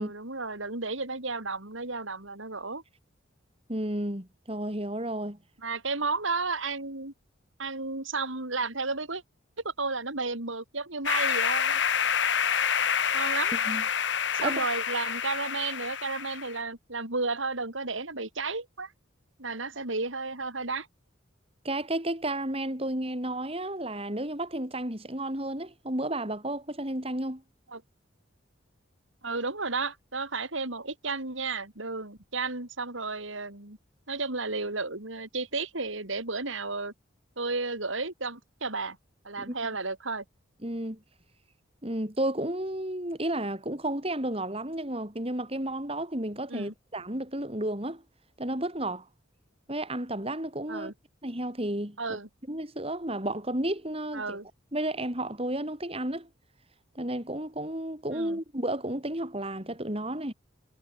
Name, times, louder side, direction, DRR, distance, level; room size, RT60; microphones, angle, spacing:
voice 1, 0.0-2.8 5.6-7.1 7.6-9.2 9.6-11.8 13.1-13.5 14.3-18.9 19.4-20.9 27.7-27.8 29.2-33.8 34.1-36.9 37.4-39.0 39.2-40.2 46.5-46.7 50.7-50.9 52.0-52.3 54.1-54.5 58.1-58.4, right 3 dB, 75° right, 4.3 m, -33 dB
voice 2, 3.7-5.4 13.7-13.8 14.4-14.7 21.6-27.4 39.4-39.6 40.6-41.0 41.8-48.0 48.4-49.1 49.7-50.9 51.2-52.2 52.5-54.4 54.7-56.3 56.9-60.3, right 1 dB, 30° right, 4.6 m, -32 dB
sound 1, 11.0-16.6, left 7 dB, 60° left, 1.4 m, -28 dB
head